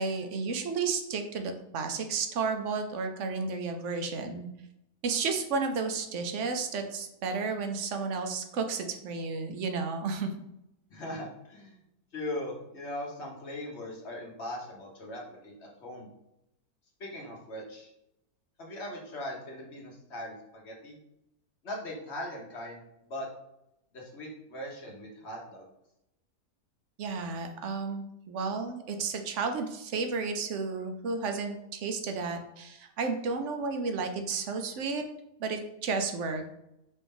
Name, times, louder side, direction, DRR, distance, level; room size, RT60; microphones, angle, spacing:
voice 1, 0.0-4.5 5.0-10.3 27.0-35.0 35.4-36.5, right 4 dB, 60° right, 6 dB, 0.8 m, -32 dB
voice 2, 10.9-11.8 12.1-16.1 17.0-17.9 18.6-21.0 21.6-22.8 23.1-23.3 23.9-25.6, left 1 dB, 45° left, -2 dB, 1.4 m, -40 dB
5.2 x 2.7 x 3.7 m, 0.83 s
omnidirectional pair, 1.6 m